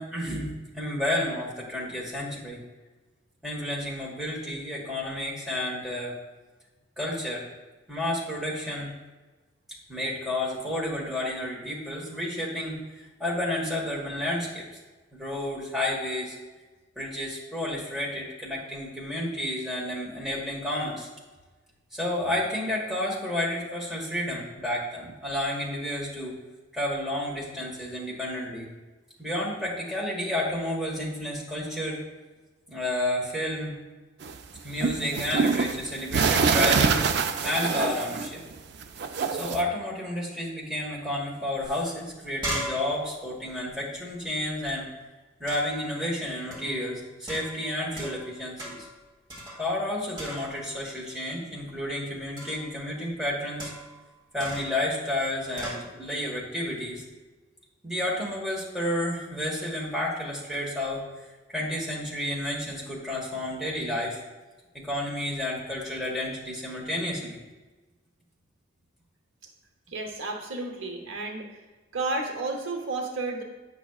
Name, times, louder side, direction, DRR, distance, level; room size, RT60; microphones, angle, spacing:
voice 1, 0.0-2.6 3.4-6.1 7.0-7.4 7.9-8.9 9.9-14.7 15.1-16.4 16.9-21.1 21.9-26.4 26.7-28.7 29.2-32.0 32.7-33.7 34.6-37.0 37.4-38.4 39.3-44.9 45.4-48.9 49.6-53.7 54.3-57.0 57.8-61.1 61.5-64.2 64.7-67.4, left 1 dB, ahead, -4 dB, 1.4 m, -31 dB
sound 1, 34.2-38.5 38.8-39.6, right 5 dB, 55° right, 0.4 m, -25 dB
sound 2, 41.6-41.7 42.0-44.7 45.5-45.9 46.5-46.8 47.3-48.3 48.6-49.0 49.3-49.9 50.2-50.8 52.4-52.7 53.6-54.0 54.4-54.8 55.6-55.9, equal, 25° right, 1.6 m, -38 dB
voice 2, 69.9-71.6 71.9-73.4, right 3 dB, 75° right, 2 dB, 0.9 m, -32 dB
9.0 x 6.0 x 2.3 m, 1.2 s
head